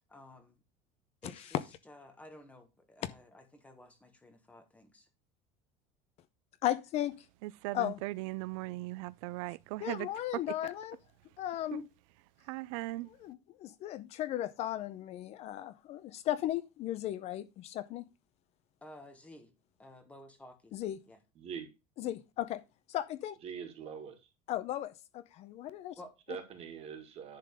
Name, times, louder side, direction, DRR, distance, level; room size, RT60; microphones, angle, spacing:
voice 1, 0.1-0.6 1.2-1.6 1.8-5.1 18.8-19.5 19.8-20.7 21.1-21.2 26.0-26.1, left 1 dB, 10° left, 1.3 m, -53 dB
voice 2, 6.6-7.2 7.7-8.0 9.8-11.0 11.4-11.9 13.2-18.0 20.7-21.0 22.0-22.6 22.9-23.4 24.5-25.9, left 13 dB, 40° left, 0.6 m, -36 dB
voice 3, 7.4-10.4 11.7-11.9 12.4-13.1, right 20 dB, 80° right, 0.4 m, -38 dB
voice 4, 21.4-21.7 23.4-24.3 26.3-27.4, right 7 dB, 35° right, 2.0 m, -43 dB
10.5 x 3.9 x 6.5 m
cardioid pair, 165°, 17 cm